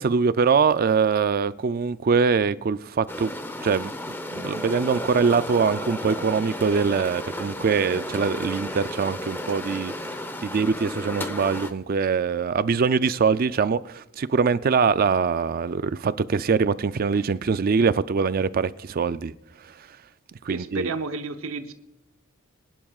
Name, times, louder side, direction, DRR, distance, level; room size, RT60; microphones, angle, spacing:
voice 1, 0.0-3.3 3.6-3.9 4.3-19.3 19.6-19.9 20.4-20.9, right 5 dB, 45° right, 0.4 m, -23 dB
sound 1, 3.1-11.7, left 1 dB, 10° left, 0.7 m, -33 dB
voice 2, 20.5-21.7, right 3 dB, 75° right, 0.9 m, -31 dB
22.0 x 11.0 x 2.4 m
head